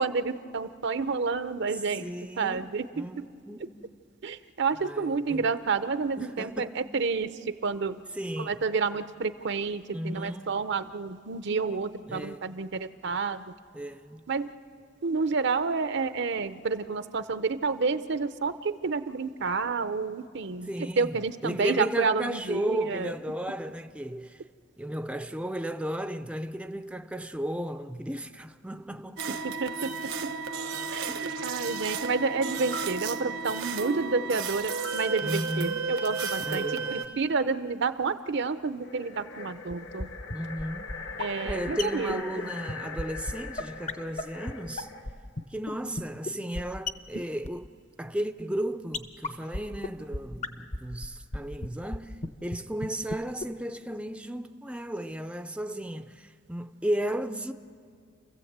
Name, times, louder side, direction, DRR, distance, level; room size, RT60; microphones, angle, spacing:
voice 1, 0.0-2.1 2.4-3.2 4.2-8.0 8.4-13.5 14.3-14.5 15.0-23.1 29.4-30.3 30.9-40.2 41.2-42.5, right 4 dB, 65° right, 0.7 m, -30 dB
voice 2, 2.0-3.8 4.8-5.5 6.2-6.8 8.2-8.6 9.9-10.5 12.1-12.5 13.7-14.3 20.7-21.1 21.4-24.4 24.8-29.4 31.1-31.4 35.2-35.8 36.5-37.1 40.3-41.0 41.4-44.9 45.5-47.7 48.0-57.5, right 1 dB, 5° right, 0.5 m, -34 dB
sound 1, 29.2-37.1, right 5 dB, 80° right, 1.1 m, -33 dB
sound 2, 38.7-45.2, left 4 dB, 60° left, 1.3 m, -41 dB
sound 3, 39.7-39.8 40.0-40.1 40.3-40.4 40.6-40.7 40.9-41.0 41.2-41.3 41.5-41.6 41.8-41.9 42.1-42.2 42.4-42.5 42.7-42.8 43.0-43.1 43.3-43.4 43.6-43.7 43.9-44.0 44.2-44.3 44.5-44.6 44.8-45.1 45.4-45.5 45.7-45.8 46.0-46.1 46.3-46.4 46.5-46.6 46.9-47.0 47.1-47.2 47.4-47.5 48.9-49.0 49.2-49.3 49.5-49.6 49.8-49.9 50.1-50.2 50.4-50.5 50.7-50.8 51.0-51.4 51.6-51.7 51.9-52.0 52.2-52.3 52.5-52.6 52.8-52.9 53.1-53.2 53.4-53.5, left 2 dB, 40° left, 0.9 m, -31 dB
29.5 x 15.0 x 8.1 m
head